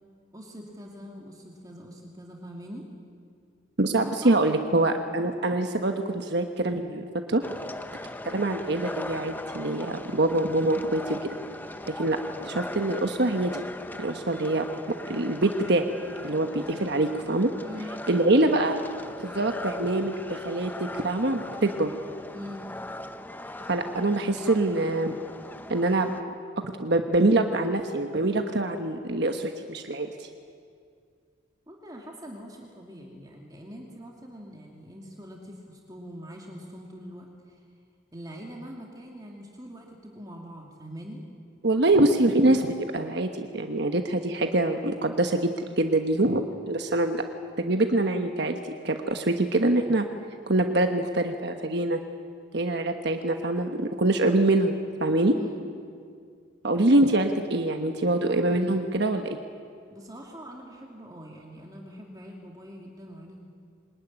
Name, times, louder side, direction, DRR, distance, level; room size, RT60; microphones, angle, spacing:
voice 1, 0.3-2.8 4.0-4.9 17.6-17.9 22.3-22.7 31.7-37.6 38.1-41.2 55.3-55.6 59.9-63.4, equal, 20° right, -1 dB, 2.6 m, -43 dB
voice 2, 3.8-7.4 8.2-11.2 12.0-12.2 12.4-13.6 14.0-14.6 15.1-15.9 16.2-17.5 18.1-18.8 19.2-21.9 23.7-25.2 25.7-26.1 26.6-30.3 41.6-47.2 47.6-48.6 48.8-50.1 50.5-52.0 52.5-55.3 56.6-59.3, right 2 dB, 55° right, 5 dB, 1.2 m, -24 dB
sound 1, 7.4-26.2, left 1 dB, 10° left, 0.8 m, -40 dB
23.5 x 19.5 x 9.9 m, 2.2 s
head